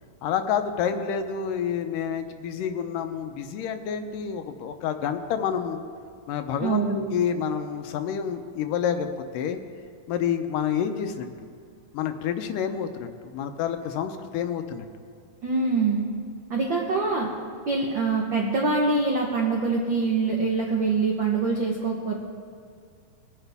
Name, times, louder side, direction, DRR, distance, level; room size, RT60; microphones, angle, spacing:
voice 1, 0.2-5.8 6.3-9.1 9.3-9.6 10.1-11.3 11.9-14.9, left 8 dB, 80° left, 8 dB, 2.3 m, -28 dB
voice 2, 6.6-7.0 15.4-16.1 16.5-17.3 17.7-22.2, right 4 dB, 80° right, -1 dB, 1.0 m, -24 dB
20.5 x 9.8 x 3.5 m, 2.3 s
omnidirectional pair, 3.9 m